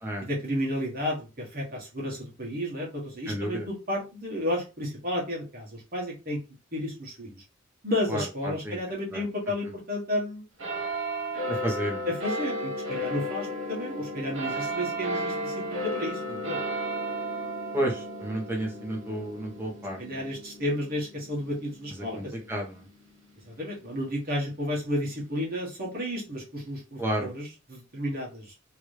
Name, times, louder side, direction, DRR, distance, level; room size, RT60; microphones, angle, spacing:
voice 1, 0.2-6.4 6.7-7.4 7.8-10.4 12.1-16.6 20.0-22.5 23.4-28.5, left 1 dB, 50° right, -3 dB, 1.3 m, -32 dB
voice 2, 3.2-3.7 8.1-8.8 9.1-9.2 11.5-12.1 17.7-20.2 22.1-22.8 27.0-27.3, right 1 dB, 10° right, -1 dB, 1.1 m, -31 dB
sound 1, 10.6-23.5 24.1-24.2, right 1 dB, 85° right, 1.2 m, -34 dB
3.0 x 2.7 x 3.2 m, 0.29 s
head